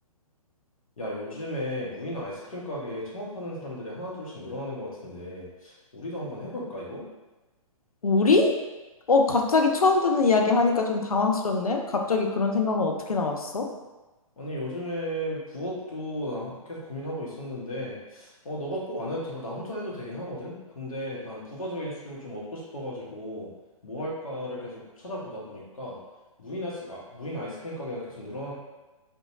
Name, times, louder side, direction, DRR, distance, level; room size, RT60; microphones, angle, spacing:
voice 1, 1.0-7.0 14.4-23.5 23.8-26.0 26.4-28.5, equal, 75° left, -4 dB, 0.9 m, -35 dB
voice 2, 8.0-8.5 9.1-13.7, left 3 dB, 90° left, 3 dB, 0.4 m, -22 dB
2.7 x 2.2 x 2.6 m, 1.1 s
figure-of-eight pair, 125°, 18 cm